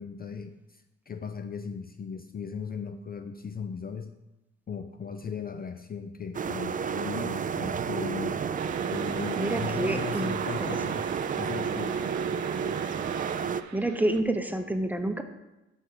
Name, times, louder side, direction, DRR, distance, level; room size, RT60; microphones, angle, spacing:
voice 1, 0.0-4.1 4.7-8.4 8.9-11.1 11.4-12.0, left 6 dB, 30° left, 8 dB, 0.5 m, -37 dB
sound 1, 6.3-13.6, right 6 dB, 30° right, 0.4 m, -31 dB
sound 2, 8.6-14.2, right 9 dB, 70° right, 0.7 m, -41 dB
voice 2, 9.4-10.4 10.6-10.8 13.7-15.2, right 1 dB, 5° right, 6 dB, 0.7 m, -28 dB
9.3 x 3.6 x 6.5 m, 0.98 s
cardioid pair, 90°, 30 cm